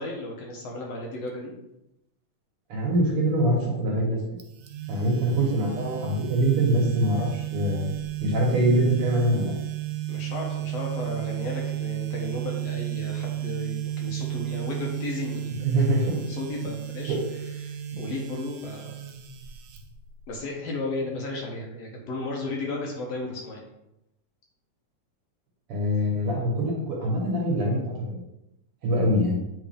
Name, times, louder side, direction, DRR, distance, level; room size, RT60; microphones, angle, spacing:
voice 1, 0.0-1.5 10.1-15.9 16.2-17.2 17.6-19.0 20.3-23.6, left 2 dB, 65° left, -1 dB, 1.9 m, -34 dB
voice 2, 2.7-4.2 4.9-7.9 8.2-9.5 15.6-16.2 17.1-17.2 25.7-28.2 28.8-29.4, right 1 dB, 55° right, -3 dB, 1.9 m, -24 dB
sound 1, 4.4-20.4, right 12 dB, 75° right, 1.7 m, -33 dB
8.5 x 3.4 x 3.4 m, 0.87 s
omnidirectional pair, 3.4 m